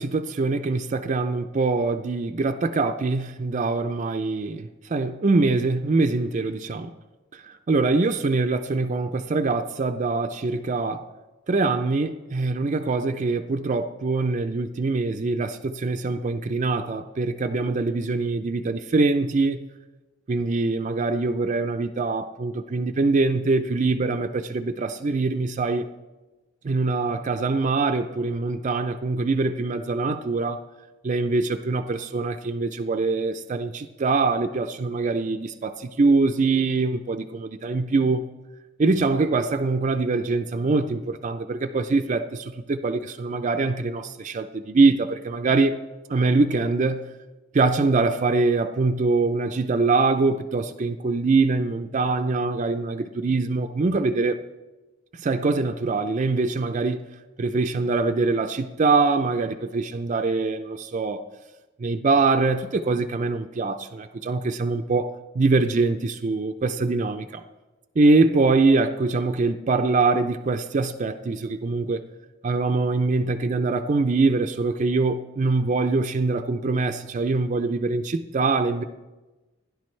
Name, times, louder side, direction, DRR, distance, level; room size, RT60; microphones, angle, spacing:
voice 1, 0.0-6.9 7.3-11.0 11.5-19.6 20.3-25.9 26.6-30.6 31.0-38.2 38.8-45.7 46.1-47.1 47.5-54.4 55.2-57.0 57.4-61.2 61.8-67.4 68.0-72.0 72.4-78.8, right 3 dB, 40° right, 0.4 m, -23 dB
16.5 x 10.5 x 3.2 m
head